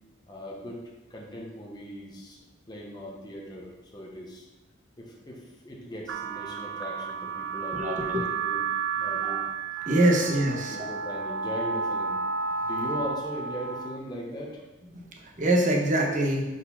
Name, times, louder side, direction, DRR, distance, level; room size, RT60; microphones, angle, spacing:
voice 1, 0.3-0.8 1.1-2.4 2.7-4.4 5.0-9.4 10.0-10.2 10.5-12.2 12.6-14.6, equal, 20° left, -2 dB, 1.0 m, -39 dB
sound 1, 6.1-14.0, right 5 dB, 70° right, 0.3 m, -32 dB
voice 2, 7.7-8.2 9.2-9.4 9.9-10.8 14.9-16.5, right 1 dB, 40° right, 0 dB, 1.0 m, -24 dB
4.8 x 4.5 x 5.5 m, 1.1 s
head